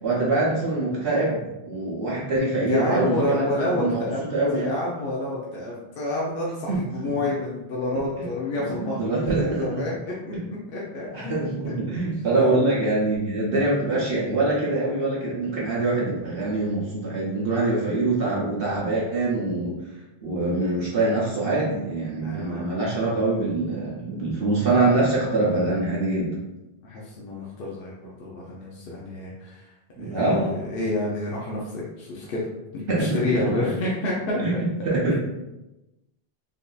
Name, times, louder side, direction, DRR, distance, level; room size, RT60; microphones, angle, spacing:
voice 1, 0.0-4.0 4.3-4.7 6.7-7.2 8.6-9.9 10.3-10.4 11.1-19.7 20.2-26.3 30.0-30.6 32.9-33.2 33.7-33.8 34.4-35.2, right 2 dB, 65° right, -5 dB, 1.0 m, -24 dB
voice 2, 2.6-4.2 4.5-10.3 10.7-11.7 12.4-12.5 22.2-22.6 26.8-29.6 30.0-32.5 32.7-34.4 35.1-35.2, left 2 dB, 65° left, -5 dB, 0.8 m, -29 dB
3.7 x 2.6 x 2.3 m, 0.97 s
omnidirectional pair, 1.0 m